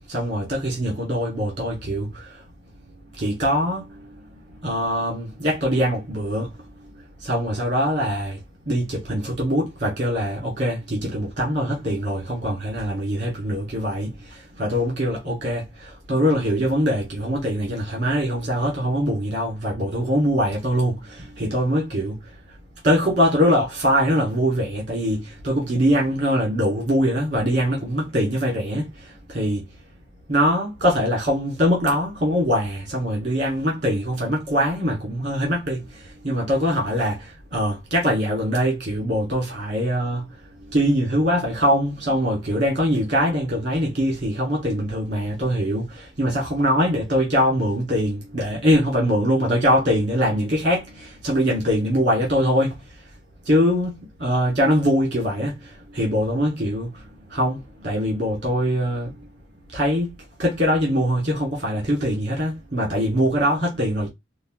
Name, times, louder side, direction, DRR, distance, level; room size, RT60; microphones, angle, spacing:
voice 1, 0.1-2.4 3.2-4.1 4.6-6.5 7.2-8.4 8.7-22.2 22.8-29.6 30.3-40.2 40.7-52.8 53.5-57.0 57.3-59.1 59.7-60.1 60.4-64.1, equal, 45° right, 2.1 m, -23 dB
5.0 x 2.3 x 3.1 m
head